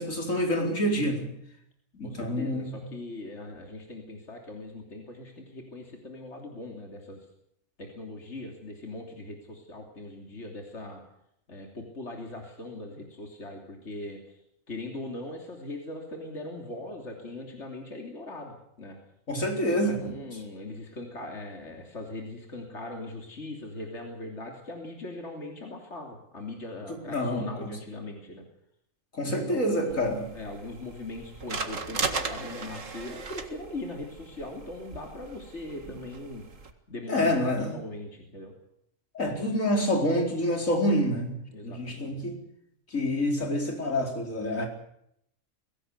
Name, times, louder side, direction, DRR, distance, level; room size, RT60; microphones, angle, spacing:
voice 1, 0.0-1.3 1.9-2.9 19.3-20.1 27.1-27.7 29.1-30.3 37.1-37.8 39.1-41.4 41.6-42.4 42.9-44.7, left 1 dB, 80° left, 2 dB, 4.7 m, -27 dB
voice 2, 2.0-7.3 7.8-11.0 11.5-14.4 14.7-19.0 19.8-28.4 29.2-36.4 36.9-38.5 41.5-42.2, left 2 dB, 60° left, 2 dB, 3.5 m, -40 dB
sound 1, 29.9-36.7, right 4 dB, 75° right, 2.2 m, -37 dB
23.5 x 17.5 x 8.2 m, 0.74 s
omnidirectional pair, 1.3 m